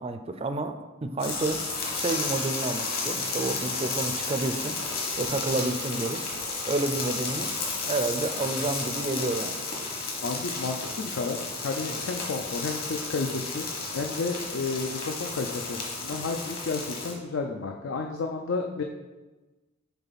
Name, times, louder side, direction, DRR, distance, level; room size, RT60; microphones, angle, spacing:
voice 1, 0.0-1.6 1.9-4.8 5.2-6.2 6.7-7.5 7.8-9.6 11.9-12.0, right 2 dB, 30° right, 8 dB, 0.4 m, -30 dB
sound 1, 1.2-17.1, left 3 dB, 50° left, 1.4 m, -32 dB
voice 2, 10.2-13.7 13.9-18.8, left 4 dB, 70° left, 3 dB, 0.5 m, -32 dB
6.8 x 4.5 x 4.1 m, 1.2 s
head